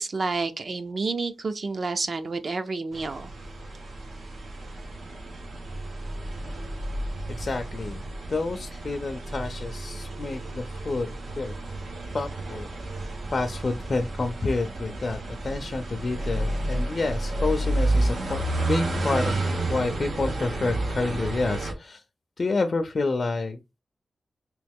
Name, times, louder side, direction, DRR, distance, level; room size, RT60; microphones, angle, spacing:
voice 1, 0.0-3.3, right 3 dB, 55° right, 0.5 m, -29 dB
sound 1, 2.9-21.7, right 2 dB, 85° right, 1.0 m, -31 dB
voice 2, 7.3-8.0 8.3-11.5 12.1-12.7 13.3-22.0 22.4-23.6, left 3 dB, 50° left, 0.4 m, -29 dB
3.0 x 2.9 x 3.5 m
wide cardioid pair, 95°, 0 cm